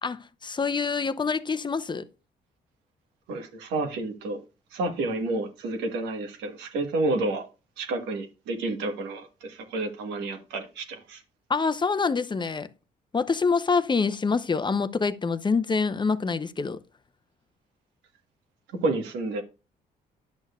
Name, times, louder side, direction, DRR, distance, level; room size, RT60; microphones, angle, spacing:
voice 1, 0.0-2.0 11.5-12.7 13.1-16.8, left 4 dB, 25° left, 0.6 m, -26 dB
voice 2, 3.3-4.4 4.7-7.4 7.8-11.2 18.8-19.4, right 2 dB, 90° right, 1.3 m, -30 dB
10.5 x 6.3 x 2.3 m
supercardioid pair, 65°, 17 cm